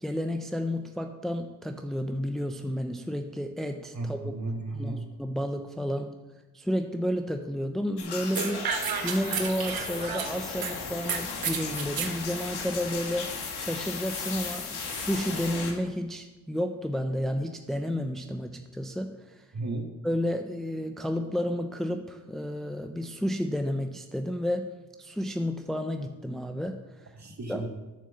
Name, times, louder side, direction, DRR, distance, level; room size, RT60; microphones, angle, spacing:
voice 1, 0.0-4.3 4.7-6.1 6.5-8.8 9.0-13.3 13.6-19.4 20.0-24.7 25.0-27.1 27.5-27.7, equal, ahead, 6 dB, 0.7 m, -31 dB
voice 2, 3.9-5.0 19.5-19.8 27.2-27.7, right 2 dB, 45° right, 3 dB, 1.9 m, -33 dB
sound 1, 8.0-15.7, left 5 dB, 85° left, 1.6 m, -36 dB
sound 2, 8.3-10.7 11.1-12.1, right 7 dB, 65° right, 1.1 m, -31 dB
7.6 x 6.7 x 6.9 m, 1.1 s
cardioid pair, 60°, 38 cm